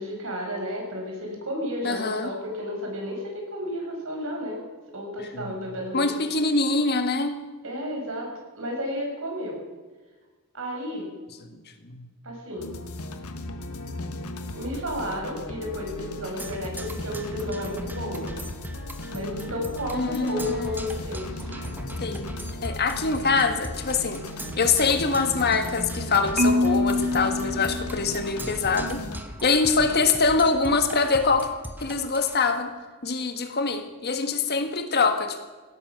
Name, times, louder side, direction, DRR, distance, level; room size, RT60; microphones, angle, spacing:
voice 1, 0.0-4.6 4.9-6.2 7.6-8.3 8.5-9.6 10.5-11.1 12.2-12.7 14.6-18.3 19.1-21.7, left 1 dB, 65° right, 0 dB, 5.7 m, -32 dB
voice 2, 1.8-2.3 5.3-5.5 5.9-7.3 11.9-12.1 19.9-20.9 22.0-22.3 22.6-24.2 24.6-29.0 29.4-31.5 31.8-32.7 33.0-35.4, left 4 dB, 45° left, 7 dB, 1.5 m, -24 dB
sound 1, 12.6-29.2, left 1 dB, 85° left, 1.6 m, -36 dB
Percussion, 16.4-32.4, right 1 dB, 10° right, 1.1 m, -40 dB
Marimba xylophone, 26.4-28.6, left 2 dB, 35° right, 0.8 m, -25 dB
17.5 x 13.0 x 6.0 m, 1.3 s
head